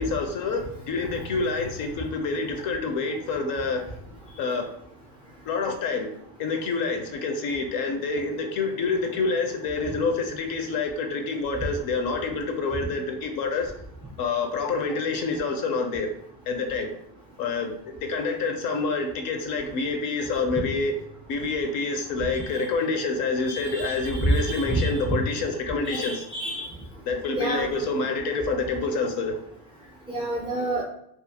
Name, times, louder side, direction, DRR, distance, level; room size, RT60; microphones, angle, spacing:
voice 1, 0.0-3.9 4.4-4.7 5.4-6.1 6.4-13.7 14.2-16.1 16.5-16.9 17.4-17.7 18.0-20.9 21.3-26.2 27.1-29.4, left 4 dB, 50° left, 5 dB, 0.5 m, -27 dB
voice 2, 23.5-25.2 25.8-26.7 27.3-27.7 30.1-30.8, right 1 dB, 15° right, -6 dB, 0.3 m, -28 dB
2.4 x 2.3 x 2.7 m, 0.71 s
cardioid pair, 145°, 46 cm